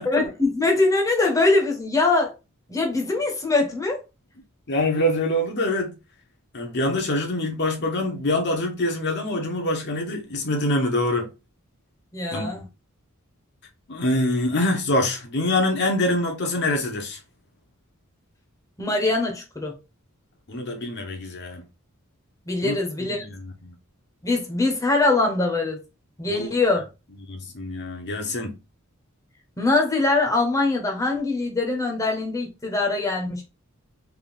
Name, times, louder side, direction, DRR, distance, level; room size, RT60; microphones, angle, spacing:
voice 1, 0.1-2.3 2.7-4.0 12.1-12.6 18.8-19.8 22.5-23.2 24.2-25.8 26.2-26.8 29.6-33.4, left 3 dB, 15° left, 0.9 m, -22 dB
voice 2, 4.7-6.0 6.5-11.3 12.3-12.5 13.9-17.2 20.5-21.6 22.6-22.8 23.1-23.3 23.6-23.7 26.3-26.6 27.3-28.5, left 1 dB, 55° left, 1.0 m, -25 dB
3.5 x 2.7 x 3.9 m
head